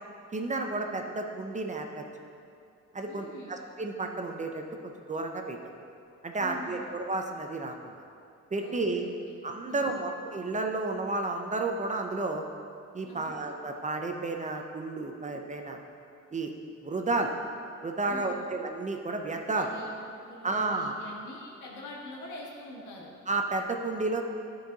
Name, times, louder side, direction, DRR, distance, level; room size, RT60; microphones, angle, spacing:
voice 1, 0.3-2.0 2.9-5.6 6.2-8.0 8.5-9.1 9.4-12.4 12.9-15.8 16.3-16.5 16.8-17.3 17.8-19.7 20.4-21.0 23.3-24.2, right 3 dB, 25° right, 3 dB, 0.6 m, -32 dB
voice 2, 3.1-3.6 6.4-6.9 8.6-9.4 9.7-10.1 13.1-13.4 18.0-18.5 19.6-23.1, left 1 dB, 75° left, -3 dB, 1.7 m, -45 dB
11.0 x 4.7 x 3.9 m, 2.5 s
cardioid pair, 90°, 30 cm